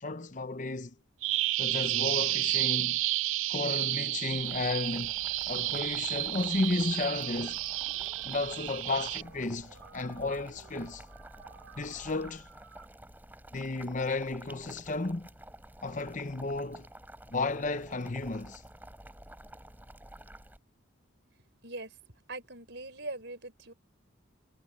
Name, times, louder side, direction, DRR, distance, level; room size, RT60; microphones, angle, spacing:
voice 1, 0.0-0.9 1.6-3.0 3.5-5.1 5.5-7.6 8.2-11.0 11.8-12.5 13.5-15.3 15.8-16.9 17.3-18.6, left 3 dB, 35° left, 0.8 m, -33 dB
Bird vocalization bird call bird song, 1.2-9.2, right 17 dB, 70° right, 0.4 m, -31 dB
sound 1, 3.6-4.6 4.8-12.9, right 4 dB, 90° right, 6.1 m, -56 dB
Boiling, 4.4-20.6, right 1 dB, 10° right, 3.9 m, -50 dB
voice 2, 21.6-21.9 22.3-23.7, right 2 dB, 55° right, 6.0 m, -41 dB
head